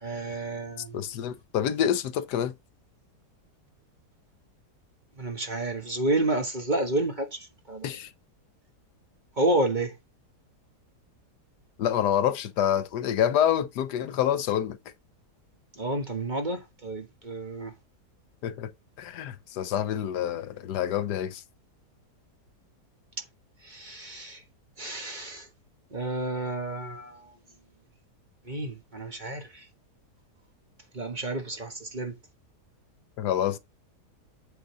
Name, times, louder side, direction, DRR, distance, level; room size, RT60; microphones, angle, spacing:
voice 1, 0.0-1.1 5.2-7.9 9.4-10.0 15.8-17.7 23.6-24.4 24.8-25.5 25.9-27.3 28.5-29.6 30.9-32.1, right 2 dB, 30° right, 1.3 m, -30 dB
voice 2, 0.9-2.5 7.8-8.1 11.8-14.8 18.4-18.7 19.0-21.4 33.2-33.6, left 10 dB, 85° left, 1.3 m, -27 dB
8.3 x 3.8 x 4.8 m
omnidirectional pair, 1.7 m